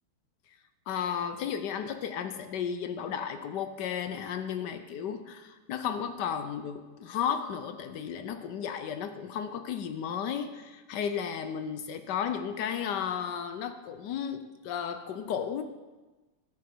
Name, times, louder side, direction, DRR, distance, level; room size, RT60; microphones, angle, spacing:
voice 1, 0.9-15.6, left 8 dB, 70° left, 9 dB, 1.0 m, -34 dB
16.0 x 6.4 x 4.4 m, 1.2 s
omnidirectional pair, 2.4 m